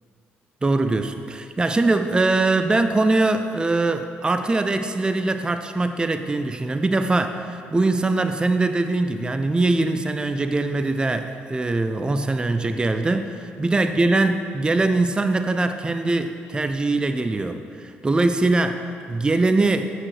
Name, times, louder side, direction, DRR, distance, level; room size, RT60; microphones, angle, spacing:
voice 1, 0.6-19.9, right 2 dB, 20° right, 8 dB, 0.4 m, -22 dB
8.4 x 4.8 x 4.9 m, 2.3 s
hypercardioid pair, 60°, 5 cm